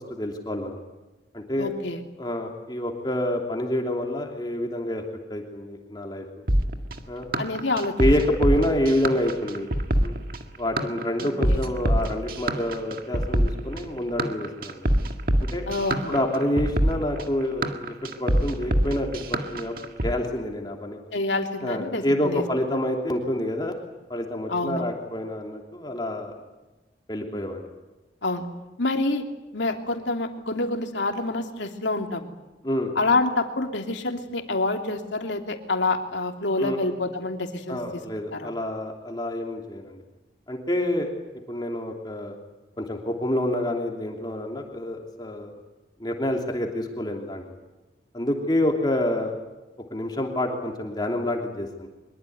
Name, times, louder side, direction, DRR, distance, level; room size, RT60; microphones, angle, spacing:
voice 1, 0.1-0.8 1.3-1.7 2.2-5.0 5.3-6.4 7.1-7.3 8.0-9.7 10.0-10.2 10.6-14.9 15.5-15.7 16.1-17.8 18.0-21.0 21.6-23.7 24.1-26.3 27.1-27.7 32.6-32.9 36.6-36.8 37.7-40.0 40.5-41.1 41.5-42.4 42.8-45.5 46.0-47.4 48.1-49.3 49.9-51.9, left 1 dB, 25° left, 1 dB, 3.1 m, -27 dB
voice 2, 1.6-2.0 7.4-7.9 11.5-11.6 15.7-16.2 21.1-22.4 24.5-24.9 28.2-28.5 28.8-29.3 29.5-32.3 32.9-37.8 38.3-38.5, left 2 dB, 85° left, 4 dB, 3.0 m, -27 dB
sound 1, 6.5-20.1, right 1 dB, 50° right, 2.0 m, -25 dB
24.0 x 23.0 x 9.5 m, 1.1 s
head